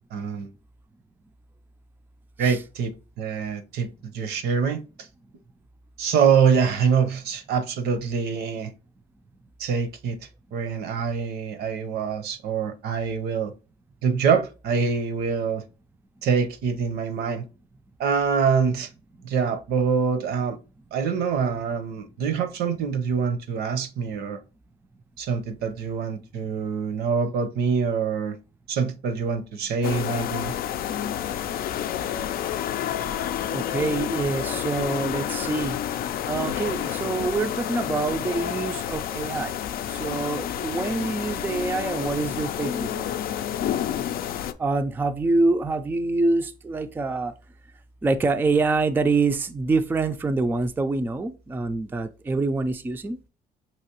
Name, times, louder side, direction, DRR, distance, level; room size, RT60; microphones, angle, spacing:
voice 1, 0.1-0.5 2.4-4.8 6.0-8.7 9.6-10.2 10.5-13.5 14.0-15.6 16.2-17.4 18.0-18.9 19.2-20.6 20.9-24.4 25.2-28.4 28.7-30.5, right 6 dB, 75° right, 0.7 m, -25 dB
sound 1, 29.8-44.5, left 10 dB, 60° left, 0.4 m, -29 dB
voice 2, 33.5-35.8 36.3-39.6 39.9-43.2 44.6-47.3 48.0-53.2, right 3 dB, 10° right, 0.4 m, -26 dB
5.6 x 3.0 x 2.9 m
cardioid pair, 110°, 17 cm